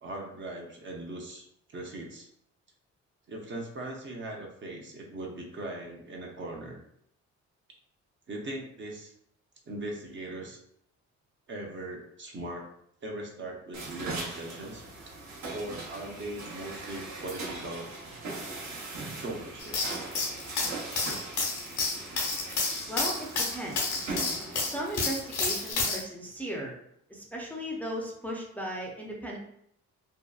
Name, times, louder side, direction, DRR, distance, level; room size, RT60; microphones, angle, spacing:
voice 1, 0.0-2.3 3.3-6.8 8.3-9.1 9.7-10.6 11.5-12.6 13.0-14.8 15.5-17.9 19.1-19.8, right 1 dB, 40° right, 0 dB, 0.6 m, -39 dB
sound 1, 13.7-25.7, right 3 dB, 70° right, 0.9 m, -40 dB
sound 2, 19.6-26.0, left 3 dB, 80° left, 0.9 m, -30 dB
voice 2, 22.9-24.1 24.6-26.7 27.1-29.4, right 1 dB, 5° left, -3 dB, 0.5 m, -36 dB
2.7 x 2.2 x 2.3 m, 0.71 s
cardioid pair, 90°, 30 cm